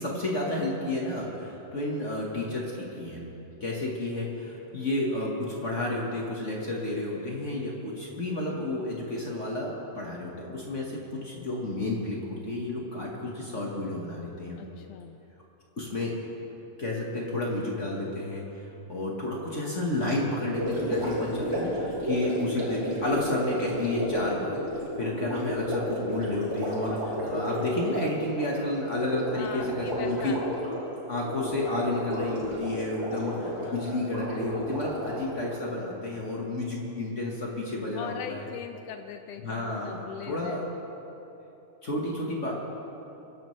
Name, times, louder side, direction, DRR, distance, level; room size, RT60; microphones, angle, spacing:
voice 1, 0.0-3.3 3.6-14.6 15.8-16.1 16.8-18.4 18.9-24.6 25.0-30.3 31.1-38.4 39.4-40.0 40.3-40.6 41.8-42.6, left 2 dB, 45° left, -2 dB, 1.0 m, -31 dB
voice 2, 14.6-15.2 29.3-30.4 33.4-34.0 37.9-40.7, left 8 dB, 85° left, 6 dB, 1.4 m, -40 dB
Gurgling, 20.5-35.8, equal, 40° right, 4.1 m, -32 dB
23.0 x 11.0 x 3.2 m, 3.0 s
omnidirectional pair, 3.3 m